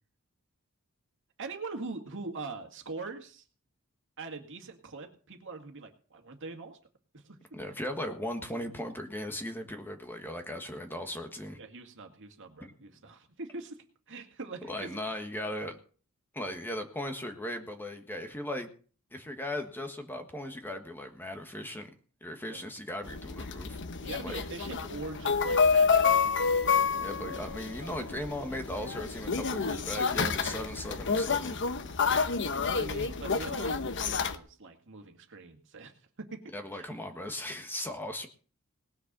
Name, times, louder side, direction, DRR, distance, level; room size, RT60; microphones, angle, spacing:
voice 1, 1.4-3.4 4.2-6.8 7.1-7.4 11.6-15.0 22.5-22.7 24.0-27.1 32.8-36.4 36.7-37.0, right 3 dB, 60° right, 5 dB, 2.1 m, -43 dB
voice 2, 7.5-11.6 12.6-12.7 14.7-15.8 16.3-18.7 19.1-21.9 22.2-23.8 24.2-24.3 24.9-25.0 27.0-31.6 36.5-38.3, left 1 dB, 10° left, 6 dB, 1.5 m, -38 dB
sound 1, 23.1-34.4, left 5 dB, 55° left, 1.0 m, -29 dB
19.0 x 6.7 x 6.8 m, 0.40 s
head